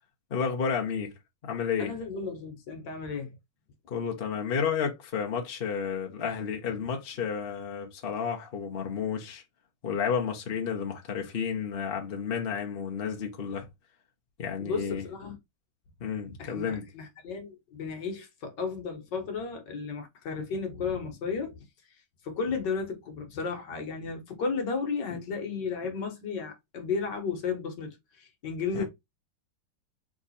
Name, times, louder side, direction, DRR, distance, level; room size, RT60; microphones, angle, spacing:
voice 1, 0.3-1.1 1.4-1.9 3.9-9.4 9.8-13.7 14.4-15.0 16.0-16.9 28.7-28.8, left 6 dB, 40° left, 0.9 m, -31 dB
voice 2, 1.8-3.4 14.6-15.4 16.4-21.6 22.2-28.8, left 5 dB, 70° left, 1.7 m, -34 dB
3.7 x 3.1 x 4.0 m
omnidirectional pair, 2.0 m